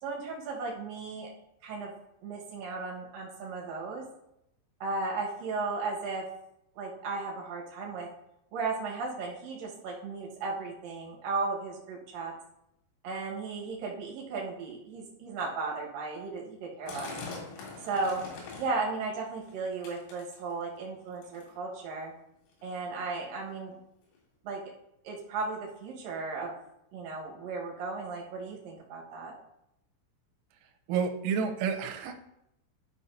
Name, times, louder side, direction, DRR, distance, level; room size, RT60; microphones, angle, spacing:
voice 1, 0.0-1.3 1.6-1.9 2.2-4.0 4.8-6.2 6.7-8.1 8.5-12.3 13.0-17.1 17.9-18.2 18.6-22.1 22.6-23.8 24.4-24.6 25.0-26.5 26.9-29.3, right 3 dB, 65° right, -2 dB, 2.3 m, -35 dB
sound 1, 16.9-18.8 19.2-19.6 19.8-20.7 21.2-21.6 22.3-22.4 22.6-22.7 23.4-23.5 24.2-24.3, left 4 dB, 85° left, 4.8 m, -43 dB
voice 2, 30.9-32.3, right 6 dB, 90° right, 5 dB, 3.4 m, -30 dB
11.0 x 6.2 x 2.7 m, 0.83 s
omnidirectional pair, 5.9 m